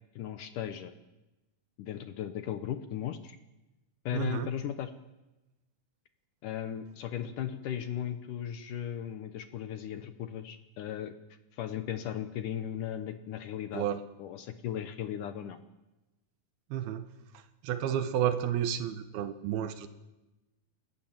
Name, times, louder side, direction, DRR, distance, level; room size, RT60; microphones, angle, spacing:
voice 1, 0.2-0.9 1.8-3.4 4.1-4.9 6.4-11.1 11.5-13.9 14.2-15.6, left 10 dB, 70° left, 9 dB, 2.2 m, -36 dB
voice 2, 4.1-4.5 13.7-14.0 16.7-17.0 17.6-19.9, right 10 dB, 75° right, 10 dB, 3.0 m, -31 dB
29.0 x 15.0 x 7.4 m, 1.0 s
omnidirectional pair, 4.5 m